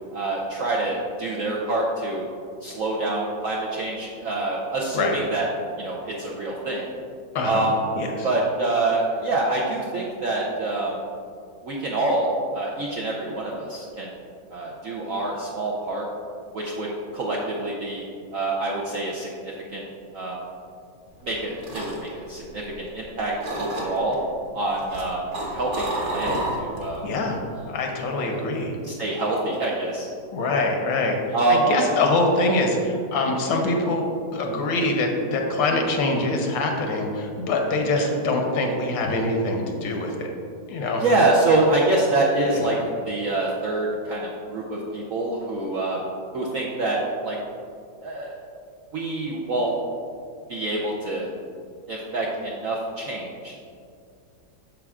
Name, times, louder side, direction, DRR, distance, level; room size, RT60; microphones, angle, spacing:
voice 1, 0.1-2.3 2.6-5.5 5.8-6.8 7.4-7.7 8.2-11.0 11.6-14.1 14.5-16.1 16.5-18.0 18.3-19.8 20.1-20.4 21.2-24.2 24.5-25.2 25.5-27.0 27.5-27.6 28.2-28.4 28.8-30.1 31.3-31.7 38.0-38.1 41.0-46.0 46.3-47.4 48.0-48.3 48.9-49.8 50.5-51.3 51.9-53.5, right 2 dB, 65° right, -3 dB, 0.8 m, -26 dB
voice 2, 7.3-8.3 27.0-27.4 27.7-28.7 30.3-31.2 31.5-40.3 40.7-41.0 42.5-42.8, left 2 dB, 75° left, 2 dB, 1.6 m, -24 dB
sound 1, 21.2-23.1 23.4-24.1 24.7-27.0 27.3-27.6, right 1 dB, 40° right, 1.4 m, -30 dB
9.0 x 6.5 x 2.4 m, 2.3 s
omnidirectional pair, 2.1 m